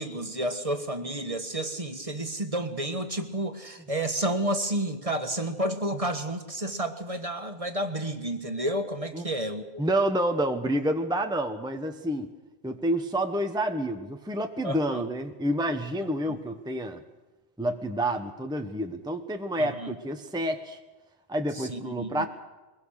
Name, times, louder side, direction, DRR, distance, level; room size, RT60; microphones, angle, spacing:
voice 1, 0.0-9.8 14.6-15.0 16.3-16.4 19.6-19.9 21.5-22.3, right 1 dB, 35° right, 7 dB, 1.7 m, -31 dB
voice 2, 9.8-12.3 12.6-17.0 17.6-20.8 21.3-22.3, right 1 dB, 5° right, 5 dB, 1.1 m, -28 dB
22.5 x 21.5 x 6.6 m, 1.2 s
omnidirectional pair, 1.1 m